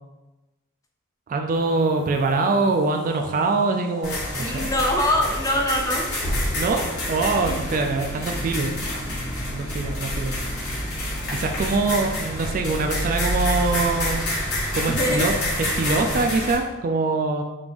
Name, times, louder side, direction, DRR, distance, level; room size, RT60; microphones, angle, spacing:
voice 1, 1.3-4.7 6.6-6.8 7.1-8.7 9.5-10.4 11.3-14.2 14.7-17.4, right 3 dB, 40° right, 4 dB, 0.4 m, -23 dB
sound 1, 1.5-16.1, equal, 70° left, 1.0 m, -41 dB
sound 2, 4.0-16.6, left 1 dB, 55° left, 1.4 m, -28 dB
voice 2, 4.4-6.1 7.5-7.6 14.9-15.3, left 1 dB, 15° left, 1 dB, 0.5 m, -23 dB
5.1 x 2.5 x 3.3 m, 1.1 s
head